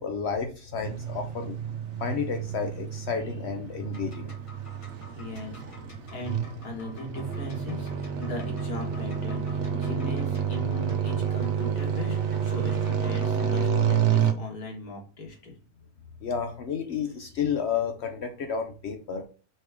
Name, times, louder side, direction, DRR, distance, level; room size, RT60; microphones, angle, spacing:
voice 1, 0.0-1.6 2.0-4.3 16.2-19.3, left 6 dB, 65° left, 6 dB, 0.7 m, -31 dB
sound 1, 0.8-14.3, right 7 dB, 60° right, 0.8 m, -29 dB
sound 2, 3.8-13.8, left 1 dB, 25° left, 1.1 m, -51 dB
voice 2, 5.2-5.8 6.1-15.5, left 2 dB, 85° left, 0 dB, 2.0 m, -39 dB
4.2 x 3.3 x 3.5 m, 0.36 s
omnidirectional pair, 1.6 m